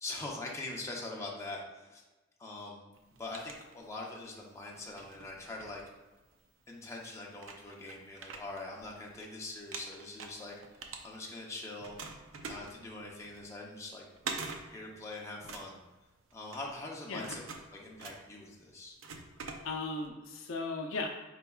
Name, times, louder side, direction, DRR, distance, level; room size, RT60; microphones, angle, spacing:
voice 1, 0.0-2.0 2.4-2.9 3.2-5.8 6.7-12.0 12.4-14.1 14.7-15.8 16.3-17.4 17.7-19.0, left 2 dB, 15° left, -2 dB, 0.6 m, -43 dB
sound 1, 2.9-4.3 4.7-6.4 7.0-7.1 7.4-9.3 9.6-11.5 11.8-20.1, right 4 dB, 70° right, 0.5 m, -45 dB
voice 2, 19.6-21.1, left 3 dB, 75° left, 2 dB, 0.6 m, -36 dB
4.5 x 4.0 x 2.3 m, 1.2 s
head